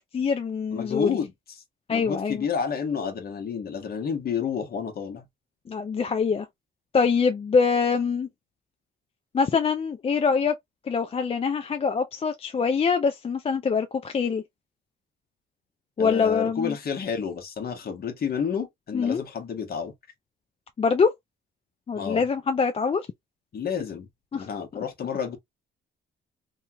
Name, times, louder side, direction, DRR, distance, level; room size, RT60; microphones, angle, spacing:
voice 1, 0.1-1.2 1.9-2.4 5.7-6.5 6.9-8.3 9.3-10.5 10.9-14.4 16.0-16.8 18.9-19.2 20.8-21.1 21.9-23.0 24.3-24.5, left 5 dB, 30° left, 0.4 m, -24 dB
voice 2, 0.7-1.3 1.9-5.3 16.0-19.9 21.9-22.3 23.5-25.4, left 7 dB, 50° left, 1.1 m, -30 dB
3.0 x 2.3 x 2.7 m
cardioid pair, 90°, 20 cm